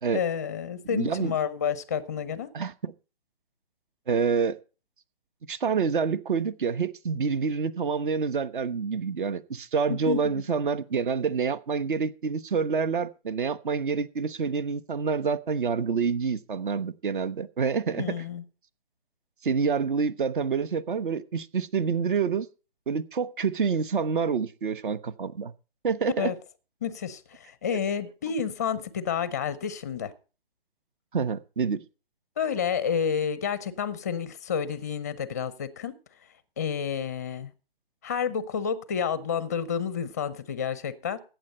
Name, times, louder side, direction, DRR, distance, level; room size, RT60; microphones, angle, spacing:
voice 1, 0.1-2.5 9.9-10.4 17.9-18.4 26.2-26.3 26.8-30.1 32.4-35.9 36.6-37.5 38.0-41.2, left 7 dB, 15° left, 0.5 m, -30 dB
voice 2, 0.8-1.4 2.5-2.9 4.1-4.6 5.5-18.1 19.4-22.5 22.9-25.5 25.8-26.3 31.1-31.8, right 5 dB, 55° right, 1.0 m, -27 dB
14.5 x 9.1 x 4.3 m
hypercardioid pair, 160°, 31 cm